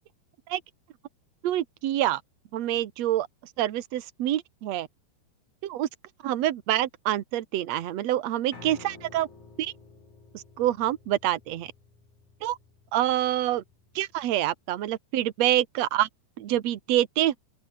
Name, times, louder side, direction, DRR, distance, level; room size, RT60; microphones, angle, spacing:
voice 1, 1.4-2.2 2.5-3.3 3.6-4.9 5.6-5.9 6.2-9.3 9.6-9.7 10.3-11.7 12.4-12.6 12.9-13.6 13.9-16.1 16.4-17.4, right 13 dB, 70° right, 1.6 m, -26 dB
Piano, 8.5-14.7, left 3 dB, 45° left, 8.1 m, -51 dB
open air
omnidirectional pair, 4.9 m